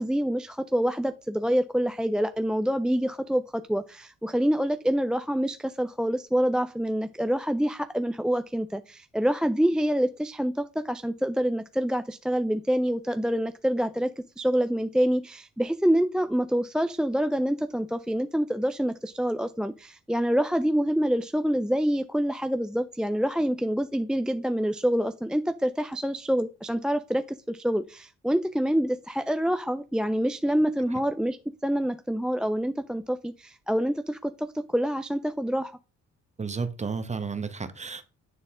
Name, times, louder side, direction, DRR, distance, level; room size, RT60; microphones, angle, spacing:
voice 1, 0.0-31.4 31.6-35.8, equal, 5° right, 12 dB, 0.3 m, -26 dB
voice 2, 36.4-38.0, right 5 dB, 25° right, 10 dB, 1.1 m, -32 dB
9.6 x 4.0 x 3.7 m, 0.32 s
cardioid pair, 90°, 30 cm